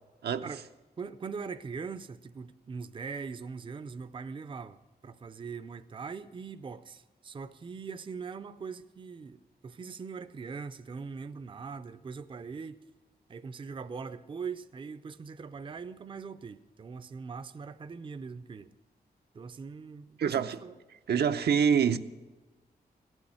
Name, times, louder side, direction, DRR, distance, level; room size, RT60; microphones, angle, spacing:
voice 1, 1.0-4.8 5.0-12.8 13.3-18.7 19.3-20.8, right 5 dB, 30° right, 0.4 m, -41 dB
voice 2, 20.2-20.6 21.1-22.0, right 7 dB, 80° right, 0.6 m, -25 dB
16.0 x 6.3 x 9.9 m
wide cardioid pair, 130°, 17 cm